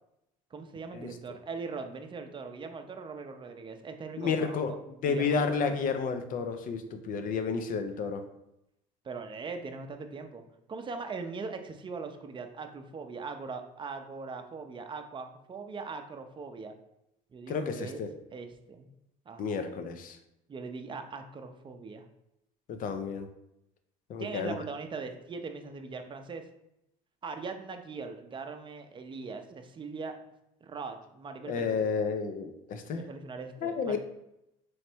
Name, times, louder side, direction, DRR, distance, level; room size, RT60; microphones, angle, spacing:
voice 1, 0.5-4.6 5.0-5.6 9.0-10.4 10.7-16.7 17.3-18.0 18.3-18.9 19.3-19.7 20.5-22.0 24.2-26.4 27.2-30.2 30.6-31.8 33.0-34.0, right 4 dB, 30° right, 6 dB, 0.6 m, -40 dB
voice 2, 4.2-4.7 5.0-8.2 17.5-18.1 19.4-20.2 22.7-23.3 24.1-24.5 31.5-33.0 33.6-34.0, left 5 dB, 55° left, 7 dB, 0.6 m, -31 dB
3.2 x 3.2 x 4.4 m, 0.84 s
supercardioid pair, 85°, 17 cm